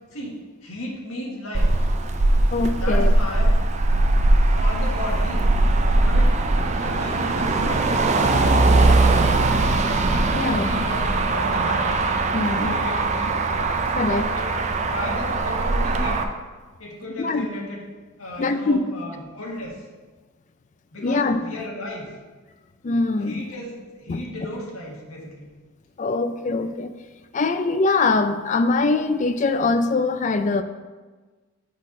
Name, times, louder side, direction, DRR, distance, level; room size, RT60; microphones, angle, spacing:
voice 1, 0.1-1.8 2.7-3.5 4.6-5.4 6.1-6.4 6.7-7.8 8.2-8.5 10.3-11.9 12.4-13.4 14.3-16.2 16.8-17.9 18.2-19.8 20.9-22.1 23.2-25.5, left 1 dB, 85° left, -2 dB, 1.5 m, -34 dB
Motor vehicle (road), 1.5-16.2, right 2 dB, 35° right, 0.4 m, -20 dB
voice 2, 2.5-3.1 10.3-10.7 12.3-12.7 13.9-14.3 17.2-17.5 18.4-18.8 21.0-21.4 22.8-23.5 24.1-24.2 26.0-26.9 27.3-30.6, left 3 dB, 35° left, 9 dB, 0.3 m, -22 dB
6.2 x 4.1 x 5.2 m, 1.3 s
head